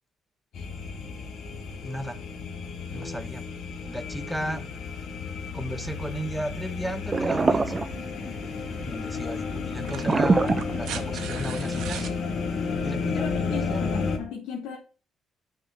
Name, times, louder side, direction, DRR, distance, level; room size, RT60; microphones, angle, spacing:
sound 1, 0.5-14.2, left 5 dB, 65° left, 1.7 m, -32 dB
voice 1, 1.8-2.2 2.9-3.4 3.9-4.6 5.5-7.9 8.8-12.2 12.8-13.8, equal, ahead, 8 dB, 0.9 m, -34 dB
voice 2, 2.9-3.2 4.4-4.6 13.1-14.8, left 6 dB, 85° left, -1 dB, 1.6 m, -36 dB
sound 2, 7.1-8.4 10.1-11.4, right 4 dB, 30° right, 0.6 m, -24 dB
paper tear, 8.6-8.7 9.7-12.2 13.7-13.8, right 9 dB, 80° right, 1.1 m, -39 dB
6.4 x 4.4 x 5.7 m, 0.35 s
cardioid pair, 105°, 0 cm